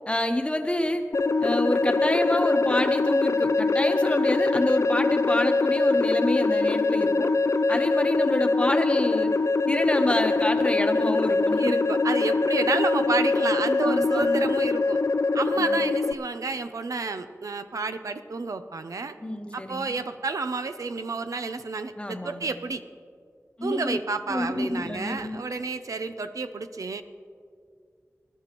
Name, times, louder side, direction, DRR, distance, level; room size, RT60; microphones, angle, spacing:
voice 1, 0.1-1.0 1.4-7.3 7.7-9.3 9.7-11.8 13.8-14.5 15.6-15.8 19.2-19.9 22.0-22.5 23.6-24.0 24.3-25.4, left 1 dB, 20° left, 5 dB, 1.0 m, -28 dB
sound 1, 1.1-16.1, left 3 dB, 60° left, 0.4 m, -23 dB
voice 2, 11.6-15.0 15.3-19.2 19.5-22.8 23.6-27.0, right 4 dB, 90° right, 9 dB, 0.5 m, -30 dB
20.0 x 11.5 x 3.0 m, 2.1 s
wide cardioid pair, 65°, 6 cm